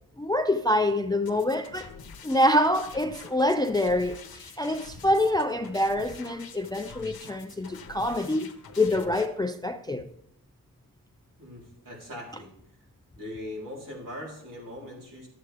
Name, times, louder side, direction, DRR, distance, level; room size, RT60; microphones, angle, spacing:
voice 1, 0.2-1.9 2.2-10.1, left 1 dB, 10° left, 0.3 m, -26 dB
sound 1, 1.3-9.3, left 6 dB, 85° left, 0.9 m, -46 dB
voice 2, 11.4-12.5 13.2-15.3, left 1 dB, 60° right, 3.5 m, -40 dB
12.0 x 7.7 x 3.4 m
wide cardioid pair, 140°, 35 cm